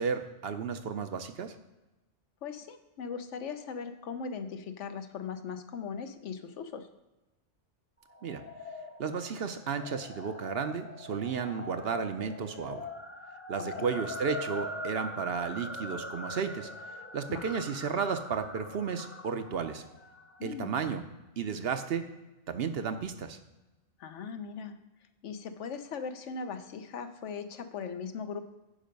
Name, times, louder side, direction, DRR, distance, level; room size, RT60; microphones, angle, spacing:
voice 1, 0.0-1.5 8.2-8.4 9.0-12.9 13.5-16.7 17.1-19.8 20.4-21.0 21.4-22.1 22.5-23.4, right 6 dB, 60° right, 9 dB, 0.8 m, -33 dB
voice 2, 2.4-6.9 13.7-13.9 17.3-17.5 20.4-20.7 24.0-24.8 25.2-28.4, left 6 dB, 75° left, 9 dB, 1.1 m, -39 dB
sound 1, 8.1-20.5, left 1 dB, 15° left, 0.6 m, -42 dB
10.0 x 5.3 x 5.3 m, 1.0 s
omnidirectional pair, 1.2 m